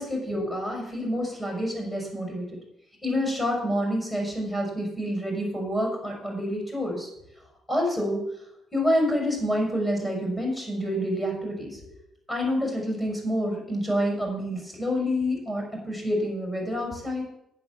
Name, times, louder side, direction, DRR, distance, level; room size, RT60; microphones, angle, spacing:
voice 1, 0.0-2.5 3.0-7.1 7.7-8.2 8.7-11.8 12.3-17.2, equal, 15° left, 0 dB, 5.8 m, -28 dB
10.5 x 9.5 x 7.1 m, 0.80 s
cardioid pair, 100°, 0 cm